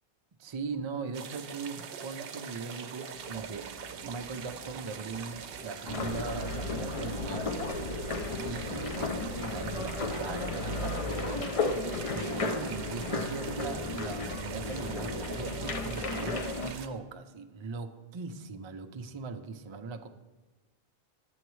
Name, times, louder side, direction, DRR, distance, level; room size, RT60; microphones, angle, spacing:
voice 1, 0.4-3.7 4.0-7.5 8.4-11.5 12.1-20.1, right 5 dB, 50° right, 6 dB, 0.3 m, -40 dB
sound 1, 1.1-16.9, right 6 dB, 70° right, 0.8 m, -43 dB
sound 2, 3.1-11.4, right 2 dB, 85° left, 2.6 m, -52 dB
sound 3, 5.9-16.7, left 3 dB, 50° left, 0.4 m, -34 dB
10.5 x 7.8 x 3.1 m, 1.2 s
omnidirectional pair, 1.0 m